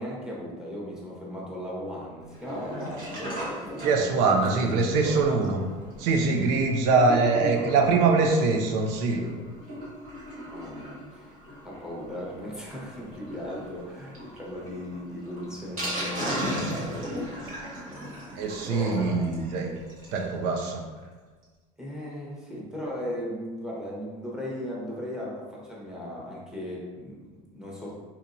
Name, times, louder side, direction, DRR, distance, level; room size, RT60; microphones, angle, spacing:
voice 1, 0.0-5.3 6.9-7.1 7.4-7.9 10.4-11.3 11.6-18.2 18.7-19.4 21.8-28.0, equal, 5° right, -4 dB, 1.1 m, -37 dB
Sink (filling or washing), 2.3-20.3 20.7-20.8 21.0-21.1 21.4-21.5, equal, 50° right, 1.3 m, -38 dB
voice 2, 3.8-5.6 6.0-9.3 18.4-19.7 20.1-20.8, right 4 dB, 75° right, 3 dB, 0.5 m, -23 dB
4.1 x 2.6 x 2.6 m, 1.4 s
supercardioid pair, 95°, 18 cm